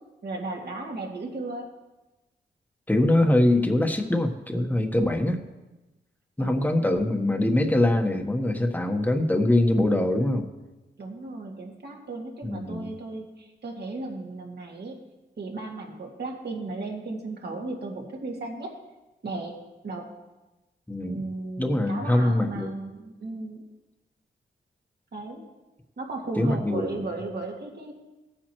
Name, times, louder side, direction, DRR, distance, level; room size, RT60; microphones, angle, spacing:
voice 1, 0.2-1.7 6.4-6.9 11.0-15.0 15.4-18.7 19.2-19.6 19.8-20.1 21.0-23.6 25.1-25.4 26.0-28.0, right 2 dB, 60° right, -1 dB, 2.3 m, -35 dB
voice 2, 2.9-5.4 6.4-10.5 12.4-13.0 20.9-21.3 21.6-22.7 26.4-27.1, left 1 dB, 10° left, 4 dB, 1.3 m, -23 dB
16.5 x 8.8 x 3.2 m, 1.1 s
cardioid pair, 65°, 20 cm